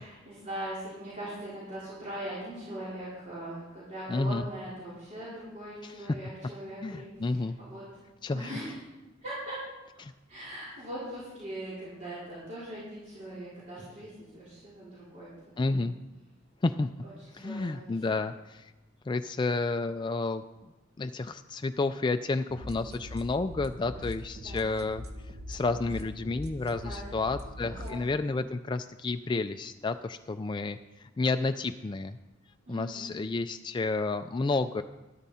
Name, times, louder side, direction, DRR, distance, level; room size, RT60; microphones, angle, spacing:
voice 1, 0.0-7.0 7.3-8.0 8.3-8.8 9.2-9.6 10.3-15.3 15.7-15.9 17.0-17.8 18.1-18.2 22.5-22.8 24.3-24.7 26.8-27.1 27.6-28.2 32.7-33.1, right 1 dB, 40° right, -10 dB, 4.4 m, -41 dB
voice 2, 4.1-4.5 5.8-6.2 6.8-7.6 8.2-8.6 10.0-10.1 15.6-16.0 16.6-16.9 17.3-18.7 19.1-20.4 21.0-25.0 25.5-30.8 31.2-32.2 32.7-34.8, left 3 dB, 25° left, 8 dB, 0.3 m, -30 dB
sound 1, 22.5-28.0, left 1 dB, 55° right, 1.1 m, -42 dB
13.0 x 12.5 x 4.2 m, 1.0 s
head